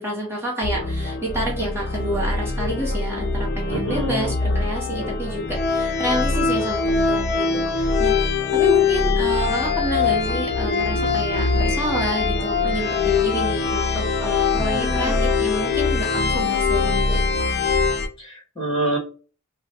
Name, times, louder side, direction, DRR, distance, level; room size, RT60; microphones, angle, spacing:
voice 1, 0.0-8.2 8.5-17.2, right 1 dB, 10° right, -3 dB, 1.0 m, -29 dB
sound 1, 0.6-18.1, left 4 dB, 50° left, 0.6 m, -22 dB
voice 2, 3.7-4.3 14.5-15.3 18.2-19.0, right 1 dB, 25° left, -1 dB, 1.5 m, -27 dB
3.1 x 2.2 x 2.8 m, 0.38 s
head